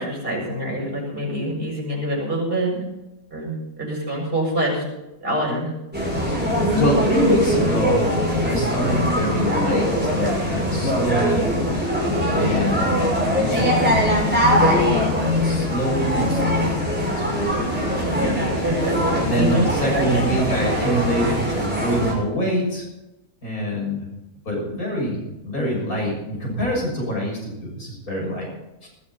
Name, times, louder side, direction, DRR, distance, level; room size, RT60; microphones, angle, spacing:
voice 1, 0.0-2.8 3.3-4.8 5.2-5.7 12.4-12.5 18.6-19.6 19.9-20.4, right 1 dB, 35° right, -3 dB, 7.5 m, -25 dB
sound 1, 5.9-22.1, equal, 5° right, 6.1 m, -21 dB
voice 2, 6.7-8.1 8.4-9.8 10.1-11.5 12.3-13.0 13.4-14.0 14.5-14.9 15.4-17.5 18.1-18.6 19.2-21.4 21.8-22.8 23.4-24.1 24.5-28.5 28.8-28.9, equal, 70° left, -2 dB, 7.5 m, -25 dB
20.5 x 13.0 x 4.3 m, 0.95 s
omnidirectional pair, 1.6 m